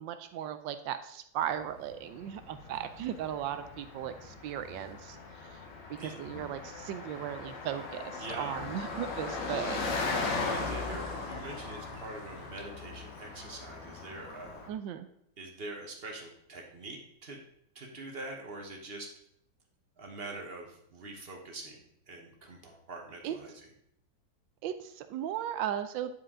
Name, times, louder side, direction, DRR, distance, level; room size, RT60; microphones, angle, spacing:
voice 1, 0.0-5.2 5.4-5.6 5.9-9.9 14.7-15.1 23.2-23.4 24.6-26.1, right 10 dB, 75° right, 10 dB, 1.2 m, -37 dB
Car passing by, 1.5-14.7, left 3 dB, 65° left, 1.6 m, -38 dB
voice 2, 8.2-8.6 10.2-14.6 15.4-17.4 17.7-19.1 20.0-21.8 22.1-23.5, right 2 dB, 35° right, 1 dB, 1.1 m, -44 dB
10.0 x 4.6 x 3.7 m, 0.72 s
omnidirectional pair, 2.1 m